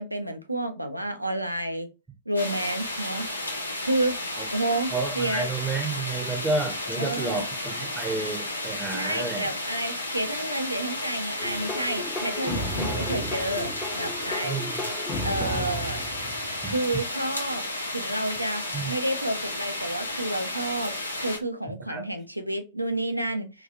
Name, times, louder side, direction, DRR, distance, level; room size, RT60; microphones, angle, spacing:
voice 1, 0.0-1.9 2.3-3.3 3.8-4.2 4.5-5.5 6.9-7.5 8.9-14.6 15.2-16.0 16.7-17.7 17.9-23.6, right 1 dB, 90° right, 0.4 m, -30 dB
sound 1, 2.3-21.4, left 1 dB, 85° left, 0.5 m, -33 dB
voice 2, 4.9-9.5 14.4-14.9 16.6-16.7 18.7-18.9 21.9-22.0, right 3 dB, 10° right, 0.6 m, -30 dB
sound 2, 11.4-16.9, equal, 20° left, 0.8 m, -34 dB
2.9 x 2.3 x 2.4 m
figure-of-eight pair, 90°, 0 cm